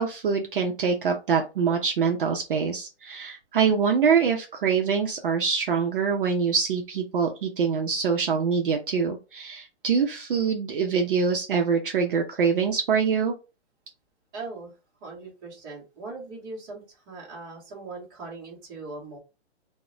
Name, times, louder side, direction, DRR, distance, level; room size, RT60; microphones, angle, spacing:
voice 1, 0.0-13.3, right 6 dB, 50° right, 3 dB, 0.5 m, -24 dB
voice 2, 14.3-14.7 15.0-19.2, right 3 dB, 20° right, -3 dB, 0.7 m, -40 dB
2.0 x 2.0 x 3.7 m, 0.30 s
hypercardioid pair, 160°, 34 cm